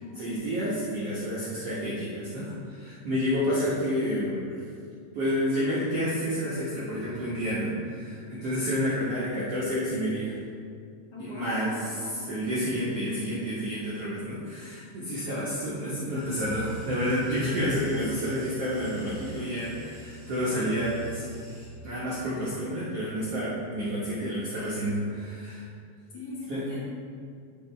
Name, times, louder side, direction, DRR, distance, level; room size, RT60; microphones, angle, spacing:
voice 1, 0.2-4.6 5.1-10.3 11.2-11.7 12.3-21.2 21.8-25.6 26.5-26.6, equal, 65° right, -9 dB, 1.5 m, -29 dB
voice 2, 11.1-12.1 26.1-26.8, left 2 dB, 85° left, -8 dB, 0.9 m, -40 dB
sound 1, 16.1-21.7, right 1 dB, 40° right, 0.9 m, -43 dB
11.5 x 3.8 x 4.4 m, 2.2 s
omnidirectional pair, 4.6 m